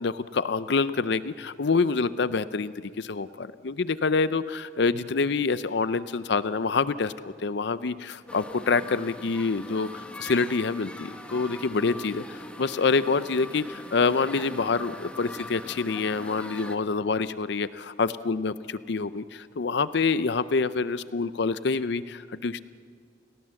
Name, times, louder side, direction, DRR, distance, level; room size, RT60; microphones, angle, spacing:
voice 1, 0.0-7.1 7.4-22.6, left 4 dB, 60° left, 15 dB, 0.5 m, -26 dB
sound 1, 8.3-16.8, left 1 dB, 5° left, 1.2 m, -41 dB
29.5 x 18.5 x 7.6 m, 2.1 s
head